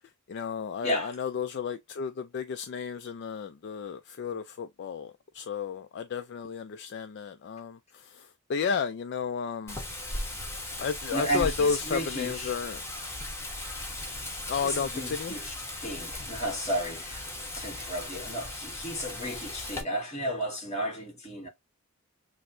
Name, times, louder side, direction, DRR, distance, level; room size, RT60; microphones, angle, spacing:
voice 1, 0.3-8.2 8.5-9.8 10.8-12.8 14.5-15.4, left 6 dB, 55° left, 0.4 m, -32 dB
voice 2, 0.8-1.2 11.1-12.6 14.5-15.5 15.8-21.5, equal, 35° left, 1.6 m, -33 dB
Wind, 9.7-19.8, left 1 dB, 10° left, 1.2 m, -38 dB
6.1 x 2.1 x 2.5 m
head